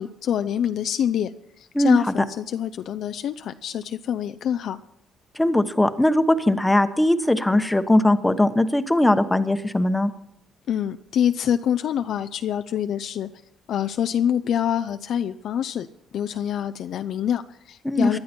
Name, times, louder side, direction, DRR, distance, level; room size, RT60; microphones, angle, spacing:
voice 1, 0.0-4.8 10.7-13.3 13.7-15.9 16.1-18.2, left 9 dB, 65° left, 8 dB, 0.5 m, -26 dB
voice 2, 5.3-10.1 17.8-18.2, left 1 dB, 10° left, 10 dB, 1.1 m, -20 dB
19.0 x 12.0 x 4.5 m, 0.86 s
cardioid pair, 105°, 0 cm